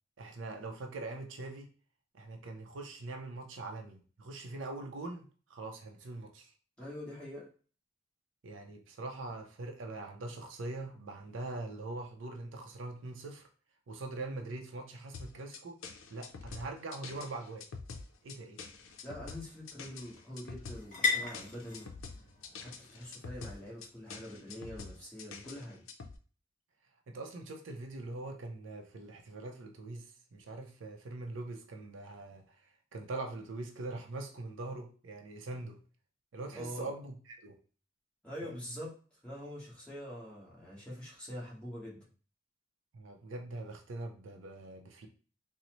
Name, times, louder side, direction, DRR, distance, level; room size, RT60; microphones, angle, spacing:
voice 1, 0.2-1.7 2.1-6.5 8.4-13.5 13.9-15.8 16.1-17.6 18.2-18.6 27.1-32.6 32.9-35.8 36.3-37.5 38.4-38.5 42.9-45.1, right 2 dB, 65° right, 3 dB, 0.5 m, -42 dB
voice 2, 6.8-7.5 19.0-21.9 22.6-25.9 36.5-36.9 38.2-38.9 39.2-42.1, equal, 5° left, -6 dB, 1.2 m, -44 dB
sound 1, 15.1-26.2, left 4 dB, 90° left, 0.5 m, -46 dB
sound 2, 17.7-25.3, left 4 dB, 40° left, 1.5 m, -40 dB
3.9 x 2.0 x 2.9 m, 0.40 s
head